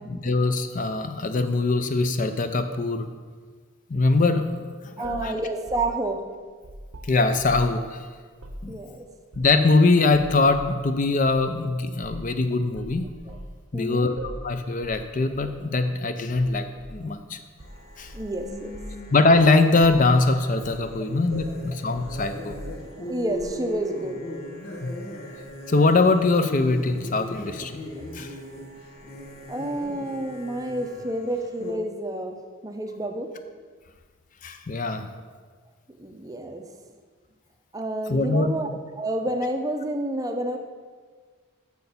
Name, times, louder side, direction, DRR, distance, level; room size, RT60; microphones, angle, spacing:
voice 1, 0.0-3.1 3.9-5.3 7.1-8.1 8.6-8.7 9.4-13.1 13.7-17.4 18.0-18.1 19.1-22.6 24.8-24.9 25.7-27.7 28.1-28.4 34.4-35.1 38.1-38.5, left 3 dB, 40° left, 8 dB, 0.5 m, -22 dB
voice 2, 5.0-6.2 8.7-9.1 13.3-13.4 13.7-14.1 18.1-18.8 23.0-24.2 29.5-32.4 32.6-33.3 36.0-36.6 37.7-40.6, right 1 dB, 15° right, 5 dB, 0.5 m, -29 dB
sound 1, 5.0-7.8 8.3-8.7 9.3-9.7 10.1-10.7 11.3-11.4 12.0-12.3 12.7-13.5 14.2-14.5 14.8-15.0 15.3-15.6 16.3-17.0 17.6-18.3 18.7-19.0 19.3-19.5 19.8-20.2 20.6-20.9 21.3-23.0, right 1 dB, 90° right, 0.9 m, -40 dB
sound 2, 17.6-31.7, left 1 dB, 90° left, 1.7 m, -39 dB
6.8 x 6.3 x 6.9 m, 1.5 s
head